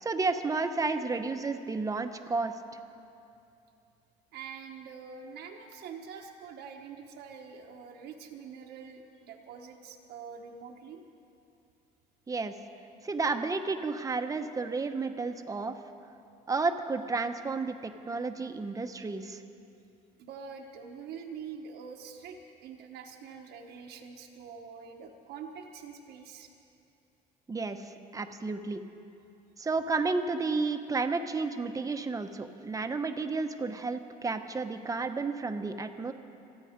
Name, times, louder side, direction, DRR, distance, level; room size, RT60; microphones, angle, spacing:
voice 1, 0.0-2.6 12.3-12.5 13.0-15.8 16.5-19.4 27.5-28.8 29.6-36.1, right 3 dB, 20° right, 7 dB, 0.9 m, -32 dB
voice 2, 4.3-11.0 20.2-26.5, right 6 dB, 80° right, 2 dB, 1.2 m, -45 dB
27.0 x 9.0 x 5.2 m, 2.7 s
cardioid pair, 110°, 17 cm